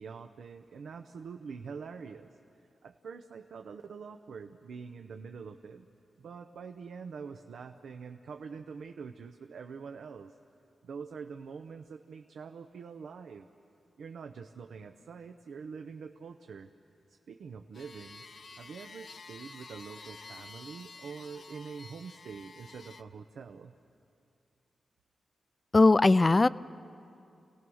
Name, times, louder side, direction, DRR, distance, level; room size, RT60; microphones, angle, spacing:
voice 1, 0.0-2.3 2.8-5.9 6.2-10.3 10.8-13.5 14.0-16.7 17.1-18.2 18.6-23.7, right 5 dB, 85° right, 6 dB, 0.7 m, -45 dB
sound 1, 17.7-23.0, left 4 dB, 65° left, 0.8 m, -50 dB
voice 2, 25.7-26.5, left 3 dB, 30° left, 17 dB, 0.4 m, -20 dB
30.0 x 17.5 x 6.3 m, 2.6 s
cardioid pair, 75°, 0 cm